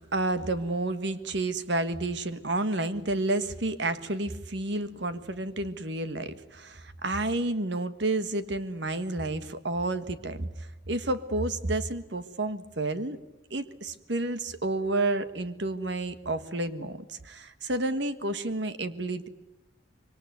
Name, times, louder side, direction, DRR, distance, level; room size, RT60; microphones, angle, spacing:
voice 1, 0.1-13.2 13.5-19.3, right 2 dB, 60° right, 12 dB, 1.5 m, -30 dB
26.0 x 23.5 x 9.5 m, 0.93 s
head